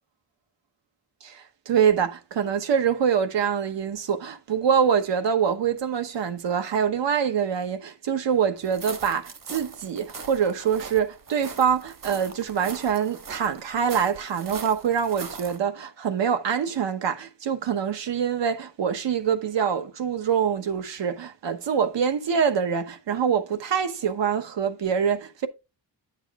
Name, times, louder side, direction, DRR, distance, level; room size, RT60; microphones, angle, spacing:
voice 1, 1.2-25.5, right 7 dB, 85° right, 1.1 m, -25 dB
sound 1, 8.6-15.6, right 5 dB, 50° right, 1.2 m, -40 dB
10.5 x 7.2 x 2.4 m
wide cardioid pair, 140°, 42 cm